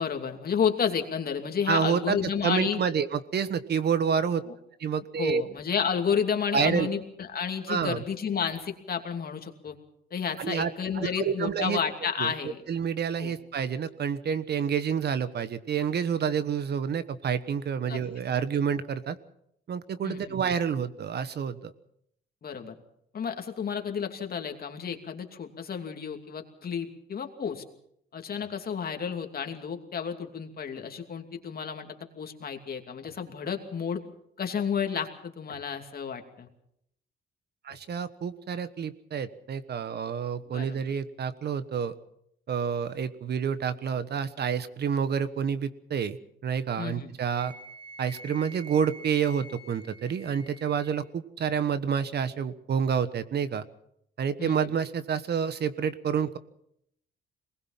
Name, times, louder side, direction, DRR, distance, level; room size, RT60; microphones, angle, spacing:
voice 1, 0.0-2.8 4.4-4.5 5.2-9.8 10.1-12.6 13.2-13.3 17.8-18.0 20.0-20.4 22.4-22.8 23.1-27.6 28.1-34.0 34.4-36.5 40.4-40.8 46.8-47.1 54.4-54.7, left 7 dB, 50° left, 5 dB, 2.8 m, -31 dB
voice 2, 1.7-2.2 2.4-4.4 4.8-5.4 6.5-6.9 7.7-8.0 10.4-10.7 10.9-11.8 12.2-12.3 12.7-19.2 19.7-21.7 37.6-41.9 42.5-46.2 46.4-47.5 48.0-53.6 54.2-56.4, right 7 dB, 55° right, 13 dB, 1.3 m, -28 dB
Wind instrument woodwind instrument, 47.3-51.0, right 2 dB, 25° right, 6.4 m, -47 dB
22.5 x 20.0 x 5.8 m, 0.73 s
cardioid pair, 90°, 20 cm